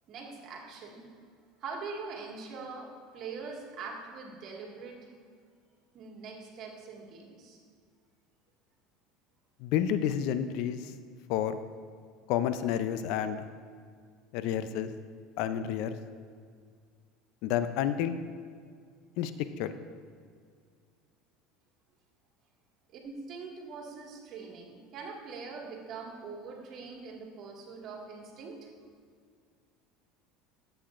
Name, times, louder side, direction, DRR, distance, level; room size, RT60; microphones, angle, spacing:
voice 1, 0.1-1.1 1.6-5.1 5.9-7.6 22.9-28.7, right 4 dB, 50° right, -1 dB, 1.9 m, -43 dB
voice 2, 9.6-10.9 11.3-11.6 12.3-13.4 14.3-14.9 15.4-16.0 17.4-18.2 19.2-19.3 19.6-19.8, left 10 dB, 70° left, 11 dB, 0.4 m, -30 dB
13.0 x 7.8 x 2.5 m, 2.1 s
supercardioid pair, 100°, 0 cm